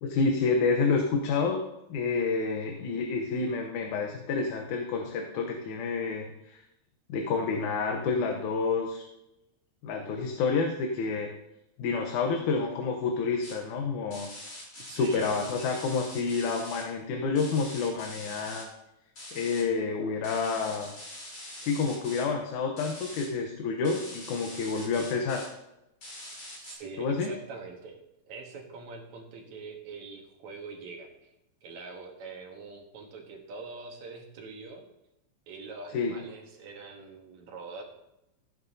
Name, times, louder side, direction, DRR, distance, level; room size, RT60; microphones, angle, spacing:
voice 1, 0.0-1.6 1.9-6.6 7.1-9.1 9.8-11.3 11.8-14.3 14.9-18.7 19.3-20.9 21.6-25.5 27.0-27.3 35.9-36.1, left 4 dB, 90° left, 3 dB, 2.4 m, -29 dB
sound 1, 13.4-13.5 14.1-16.8 17.4-18.6 19.2-19.6 20.2-22.2 22.8-23.3 23.8-25.5 26.0-26.8, left 1 dB, 35° left, 3.6 m, -44 dB
voice 2, 14.9-15.5 26.6-31.3 31.6-34.8 35.5-37.8, right 4 dB, 75° right, 2 dB, 2.8 m, -44 dB
15.5 x 9.4 x 2.7 m, 0.86 s
omnidirectional pair, 3.3 m